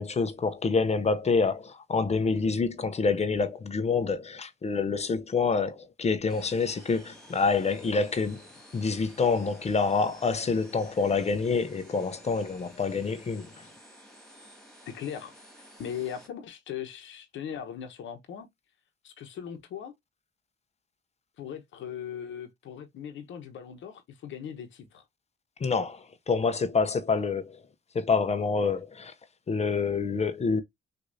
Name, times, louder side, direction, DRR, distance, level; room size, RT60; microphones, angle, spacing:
voice 1, 0.0-8.4 8.7-13.5 25.6-27.6 27.9-29.1 29.5-30.6, left 4 dB, 35° left, 0.7 m, -27 dB
sound 1, 6.3-16.3, equal, 5° left, 2.1 m, -53 dB
voice 2, 14.9-15.3 15.8-18.5 19.0-19.9 21.4-25.0, left 8 dB, 75° left, 1.0 m, -39 dB
6.2 x 2.6 x 2.6 m
cardioid pair, 90°, 20 cm